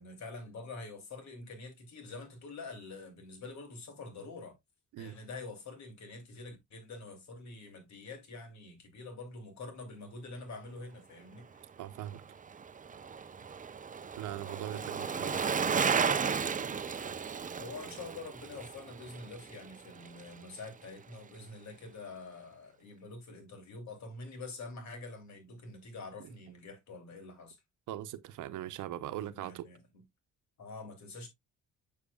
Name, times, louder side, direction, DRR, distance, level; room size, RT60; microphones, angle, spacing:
voice 1, 0.0-4.5 5.0-11.5 14.6-15.8 17.6-27.6 29.3-29.8 30.6-31.3, left 3 dB, 65° left, 3.0 m, -46 dB
voice 2, 11.8-12.2 14.2-15.6 26.2-26.3 27.9-29.7, right 12 dB, 80° right, 0.8 m, -41 dB
Bicycle, 12.0-20.4 20.7-20.8, right 6 dB, 25° right, 0.6 m, -34 dB
7.2 x 6.9 x 2.3 m
cardioid pair, 90°, 30 cm